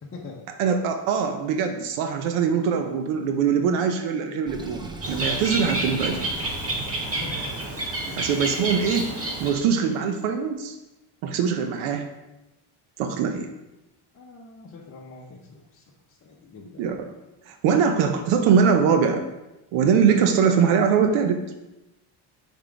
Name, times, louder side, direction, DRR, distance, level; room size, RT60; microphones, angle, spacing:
voice 1, 0.0-0.4 6.8-7.7 8.1-8.2 14.1-16.9, left 3 dB, 25° left, -2 dB, 0.8 m, -44 dB
voice 2, 0.6-6.3 8.2-9.1 9.4-10.8 11.2-12.1 13.0-13.5 16.8-17.1 17.5-19.2 19.7-21.4, right 6 dB, 80° right, 6 dB, 0.8 m, -22 dB
Sink (filling or washing), 4.5-7.2, right 2 dB, 10° right, 0.3 m, -40 dB
Bird, 5.0-9.8, right 1 dB, 30° right, 1.8 m, -29 dB
5.8 x 3.7 x 4.7 m, 0.96 s
cardioid pair, 110°, 48 cm